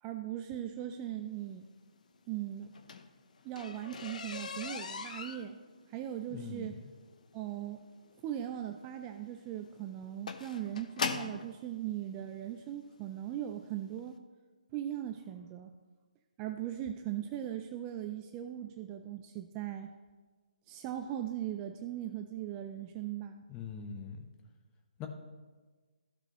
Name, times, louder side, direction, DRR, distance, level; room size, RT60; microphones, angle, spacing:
voice 1, 0.0-1.6 2.3-2.7 3.4-5.6 5.9-6.8 7.3-7.8 8.2-14.2 14.7-15.7 16.4-19.9 20.7-23.4, right 11 dB, 20° right, 6 dB, 0.3 m, -39 dB
sound 1, 2.6-11.5 12.4-12.5 13.1-13.3 13.6-13.7 14.0-14.1, left 5 dB, 60° left, 0.7 m, -41 dB
voice 2, 6.3-6.7 23.5-24.3 25.0-25.1, left 6 dB, 15° left, 4 dB, 0.9 m, -42 dB
14.5 x 5.9 x 3.0 m, 1.4 s
hypercardioid pair, 155°, 5 cm